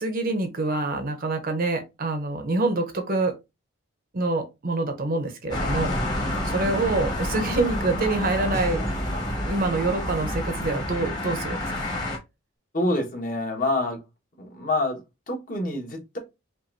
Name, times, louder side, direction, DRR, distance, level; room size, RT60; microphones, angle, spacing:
voice 1, 0.0-3.4 4.1-8.9 9.4-11.9, right 2 dB, 45° right, 0.8 m, -26 dB
sound 1, 5.5-12.2, left 1 dB, 20° left, 1.3 m, -29 dB
sound 2, 7.7-10.8, right 1 dB, 15° right, 0.4 m, -39 dB
voice 2, 12.7-14.0 14.4-16.2, left 2 dB, 45° left, 1.4 m, -27 dB
5.3 x 2.5 x 2.6 m
head